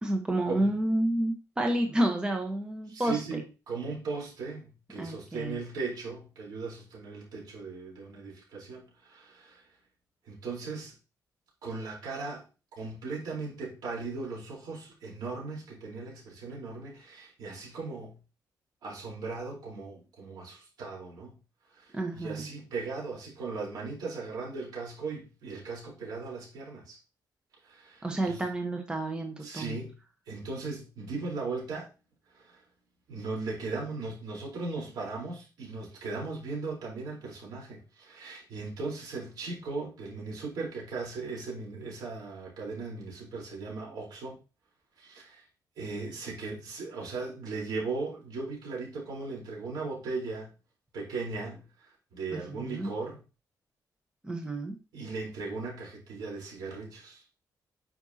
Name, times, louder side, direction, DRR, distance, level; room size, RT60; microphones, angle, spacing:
voice 1, 0.0-3.4 5.0-5.6 21.9-22.5 28.0-29.7 52.3-52.9 54.2-54.7, right 1 dB, 15° right, 3 dB, 1.1 m, -30 dB
voice 2, 2.9-9.6 10.3-10.9 11.6-12.4 12.8-18.2 18.8-21.3 21.7-27.0 27.6-28.4 29.4-30.0 30.3-31.9 32.3-32.6 33.1-44.4 45.0-45.4 45.8-50.5 50.9-53.2 54.9-57.2, right 3 dB, 85° right, -3 dB, 4.0 m, -38 dB
9.7 x 5.3 x 2.8 m, 0.31 s
wide cardioid pair, 160°, 7 cm